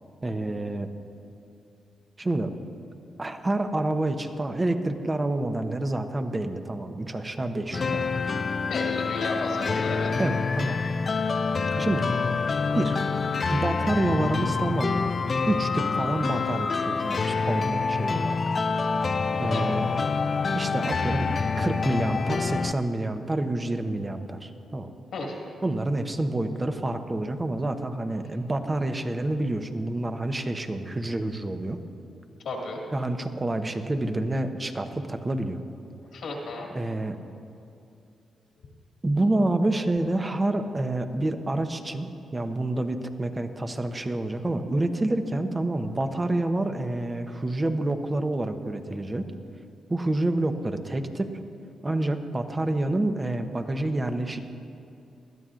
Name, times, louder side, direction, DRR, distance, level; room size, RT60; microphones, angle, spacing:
voice 1, 0.2-0.9 2.2-2.5 3.2-8.1 10.2-10.8 11.8-12.1 12.7-13.0 13.5-15.1 15.5-18.4 19.4-19.9 20.5-21.3 21.6-24.9 25.6-31.8 32.9-35.6 36.7-37.2 39.0-49.3 49.9-51.4 51.8-54.4, right 2 dB, 30° right, 7 dB, 0.9 m, -28 dB
sound 1, 7.7-22.7, left 4 dB, 45° left, 0.4 m, -26 dB
voice 2, 8.7-10.1 19.5-19.6 25.1-25.4 32.4-32.8 36.1-36.7 38.6-38.7, left 3 dB, 75° left, 0 dB, 2.1 m, -33 dB
20.0 x 12.5 x 2.5 m, 2.6 s
supercardioid pair, 55°, 0 cm